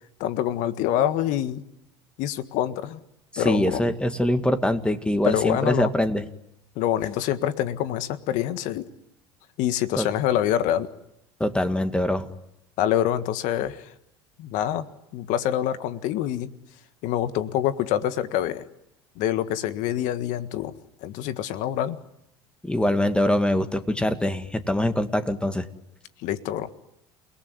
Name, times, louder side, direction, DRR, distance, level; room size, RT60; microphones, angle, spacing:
voice 1, 0.2-1.6 2.2-3.0 3.4-3.8 5.2-5.9 6.7-8.9 9.6-10.9 12.8-13.9 14.4-14.8 15.1-16.5 17.0-18.6 19.2-20.7 21.0-22.0 26.2-26.7, left 11 dB, 60° left, 11 dB, 1.7 m, -26 dB
voice 2, 3.3-6.2 10.0-10.1 11.4-12.3 22.6-25.7, left 1 dB, 5° left, 9 dB, 2.1 m, -23 dB
29.0 x 19.0 x 9.5 m, 0.83 s
hypercardioid pair, 75°, 15 cm